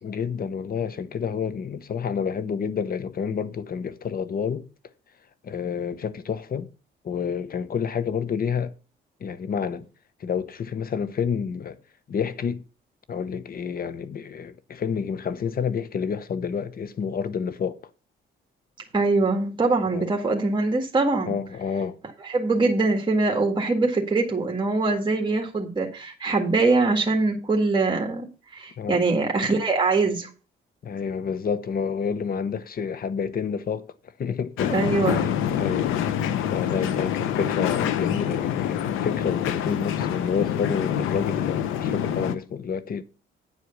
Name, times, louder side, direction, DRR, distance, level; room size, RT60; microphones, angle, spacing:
voice 1, 0.0-4.7 5.4-6.7 7.0-8.7 9.2-9.8 10.2-11.8 12.1-12.6 13.1-17.8 19.9-20.1 21.3-22.0 28.8-29.0 30.8-33.9 34.2-34.7 35.1-43.0, left 6 dB, 50° left, 0.9 m, -29 dB
voice 2, 18.9-21.3 22.2-30.3 34.7-35.3, right 3 dB, 25° right, 1.8 m, -23 dB
sound 1, 34.6-42.4, left 9 dB, 90° left, 0.9 m, -26 dB
9.6 x 4.9 x 6.8 m
cardioid pair, 90°, 20 cm